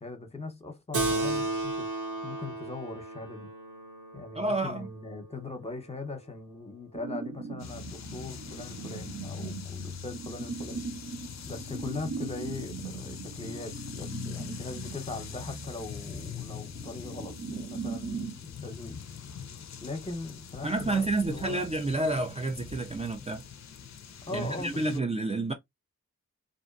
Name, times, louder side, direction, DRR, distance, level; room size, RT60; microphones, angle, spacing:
voice 1, 0.0-1.9 2.2-3.5 4.1-10.8 11.5-19.0 19.8-21.6 24.2-25.0, left 3 dB, 20° left, 0.9 m, -40 dB
Keyboard (musical), 0.9-5.8, right 2 dB, 70° right, 1.1 m, -34 dB
voice 2, 4.4-4.9 20.6-23.5 24.3-25.5, right 2 dB, 20° right, 0.4 m, -29 dB
sound 1, 6.9-18.4, right 5 dB, 50° right, 0.7 m, -40 dB
sound 2, 7.6-25.0, left 7 dB, 60° left, 0.5 m, -43 dB
2.5 x 2.1 x 2.4 m
cardioid pair, 40°, 32 cm